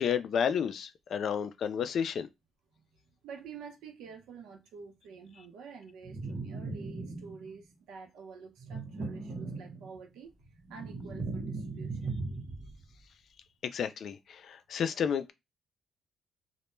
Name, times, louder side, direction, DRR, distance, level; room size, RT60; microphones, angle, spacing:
voice 1, 0.0-2.3 13.7-15.3, left 7 dB, 65° left, 0.3 m, -31 dB
voice 2, 2.7-10.3 10.7-12.2, right 5 dB, 85° right, 0.7 m, -49 dB
sound 1, 6.0-7.6 8.6-10.1 10.5-12.8, right 3 dB, 50° right, 0.8 m, -38 dB
2.1 x 2.1 x 3.0 m
cardioid pair, 90°, 0 cm